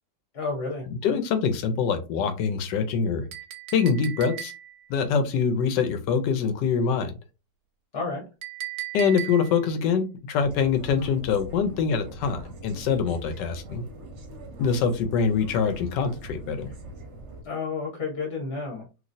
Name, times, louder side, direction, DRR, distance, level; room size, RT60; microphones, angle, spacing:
voice 1, 0.3-0.8 7.9-8.2 17.4-18.9, left 4 dB, 40° left, 0 dB, 1.0 m, -31 dB
voice 2, 0.9-3.3 3.7-4.5 4.9-7.2 8.9-13.8 14.6-16.7, left 6 dB, 80° left, 7 dB, 1.3 m, -24 dB
Chink clink, 3.3-4.9 8.4-9.7, right 13 dB, 90° right, 1.2 m, -37 dB
sound 1, 10.4-17.4, right 2 dB, 55° right, 0.8 m, -42 dB
3.0 x 2.7 x 2.6 m, 0.29 s
omnidirectional pair, 1.9 m